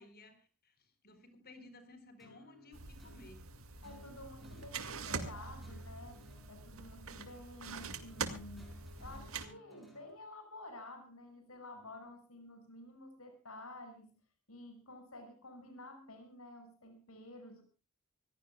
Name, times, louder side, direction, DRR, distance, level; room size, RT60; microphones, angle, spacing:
voice 1, 0.0-3.4, left 2 dB, 45° left, 10 dB, 4.4 m, -57 dB
sound 1, 2.2-10.2, left 1 dB, ahead, 6.2 m, -60 dB
sound 2, 2.7-9.5, right 5 dB, 70° right, 2.3 m, -44 dB
voice 2, 3.8-6.2 6.5-14.1 14.5-17.6, left 1 dB, 80° left, 6 dB, 6.0 m, -51 dB
25.5 x 16.5 x 2.3 m, 0.33 s
head